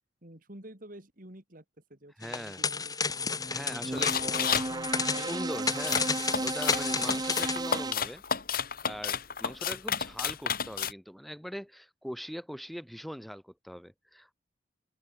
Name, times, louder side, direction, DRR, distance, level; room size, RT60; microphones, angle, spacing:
voice 1, 0.2-1.6 1.9-3.2 3.8-6.0, right 1 dB, 45° right, 3.5 m, -49 dB
sound 1, 2.2-7.6, left 5 dB, 20° left, 1.6 m, -32 dB
voice 2, 2.2-2.6 3.4-4.1 5.2-8.2 8.8-14.3, equal, ahead, 2.4 m, -41 dB
sound 2, 3.1-7.9, right 2 dB, 20° right, 0.9 m, -35 dB
sound 3, 3.9-4.7 5.9-10.9, left 7 dB, 50° left, 2.3 m, -31 dB
head